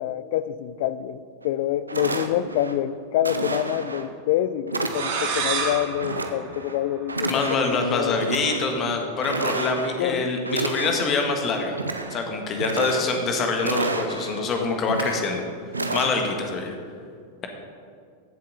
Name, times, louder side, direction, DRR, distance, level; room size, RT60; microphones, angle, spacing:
voice 1, 0.0-7.4 7.7-8.2 10.0-10.3, left 12 dB, 50° left, 16 dB, 0.4 m, -26 dB
sound 1, 1.4-1.5 1.9-2.7 3.2-4.0 4.7-5.4 6.0-6.8 7.1-7.8 8.2-8.7 9.2-10.0 10.4-11.3 11.7-12.2 12.5-13.3 13.6-14.4 14.8-15.4 15.7-16.1, right 2 dB, 80° right, 0.7 m, -30 dB
sound 2, 4.8-7.4, right 5 dB, 55° right, 1.7 m, -30 dB
voice 2, 7.3-11.7 12.1-15.4 15.9-16.8, left 3 dB, 30° left, 3 dB, 1.5 m, -25 dB
15.0 x 7.4 x 4.0 m, 2.2 s
figure-of-eight pair, 90°, 0 cm